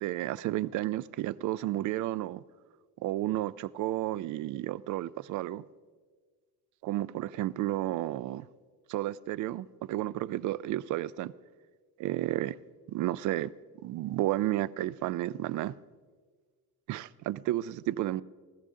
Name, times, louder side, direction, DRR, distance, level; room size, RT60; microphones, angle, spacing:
voice 1, 0.0-2.4 3.0-5.6 6.8-8.5 8.9-11.3 12.0-12.6 12.9-13.5 13.8-15.7 16.9-18.2, right 15 dB, 65° right, 0.5 m, -32 dB
19.0 x 14.5 x 3.7 m
cardioid pair, 120°, 32 cm